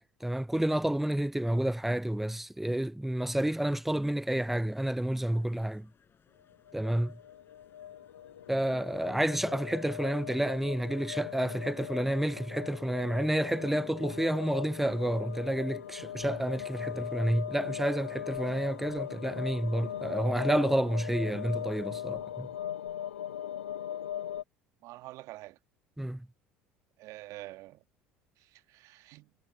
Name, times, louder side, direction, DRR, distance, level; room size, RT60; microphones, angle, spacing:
voice 1, 0.2-5.9 6.7-7.1 8.5-22.5 26.0-26.3, right 1 dB, 5° right, 0.4 m, -30 dB
sound 1, 4.7-22.1, left 7 dB, 35° left, 7.0 m, -66 dB
sound 2, 6.5-24.4, left 10 dB, 85° left, 0.6 m, -39 dB
voice 2, 24.8-25.6 27.0-27.8 28.4-29.3, right 18 dB, 60° right, 1.4 m, -46 dB
hypercardioid pair, 65°, 6 cm